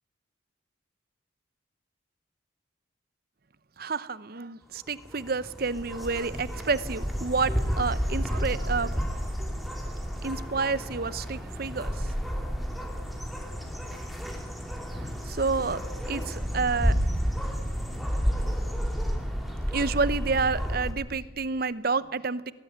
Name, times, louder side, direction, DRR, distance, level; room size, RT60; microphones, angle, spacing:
voice 1, 3.8-9.2 10.2-12.1 15.0-16.9 18.4-18.5 19.7-22.5, right 4 dB, 50° right, 16 dB, 0.8 m, -29 dB
sound 1, 4.8-20.9, equal, ahead, 3.0 m, -31 dB
20.5 x 18.5 x 9.5 m, 1.3 s
head